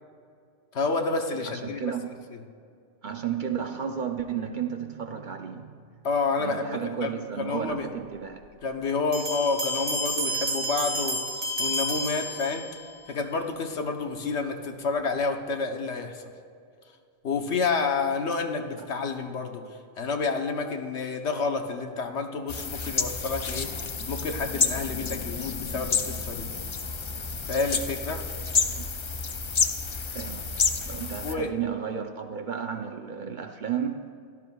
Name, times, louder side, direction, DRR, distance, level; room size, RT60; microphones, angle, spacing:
voice 1, 0.7-1.8 6.0-7.1 7.4-7.9 8.6-11.2 11.6-12.6 13.1-16.3 17.2-19.6 20.0-23.7 24.1-26.5 27.5-28.2 31.2-31.5, left 4 dB, 75° left, 5 dB, 1.2 m, -29 dB
voice 2, 1.4-2.2 3.0-6.1 6.4-8.4 18.8-18.9 28.7-28.9 30.1-30.5 30.8-34.1, right 8 dB, 55° right, 5 dB, 0.6 m, -33 dB
Bell, 9.1-12.9, equal, 80° right, 1.9 m, -30 dB
sound 1, 22.5-31.3, left 5 dB, 40° left, 0.4 m, -29 dB
17.0 x 12.0 x 2.3 m, 2.3 s
omnidirectional pair, 1.2 m